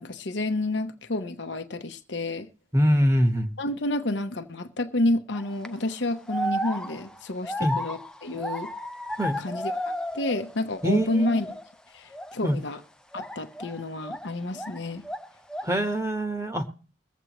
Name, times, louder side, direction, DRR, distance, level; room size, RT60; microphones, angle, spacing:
voice 1, 0.0-2.5 3.6-8.7 9.4-11.6 11.9-12.8 13.1-15.0, left 2 dB, 65° left, 0.9 m, -30 dB
voice 2, 2.7-3.5 7.6-7.7 9.2-9.4 10.8-11.4 12.4-12.6 15.6-16.6, equal, 15° right, 1.1 m, -23 dB
sound 1, 5.3-5.7 6.3-10.6 10.9-11.7 12.1-12.4 13.1-14.8 15.0-15.8, equal, 5° left, 0.5 m, -33 dB
22.5 x 7.9 x 3.0 m
head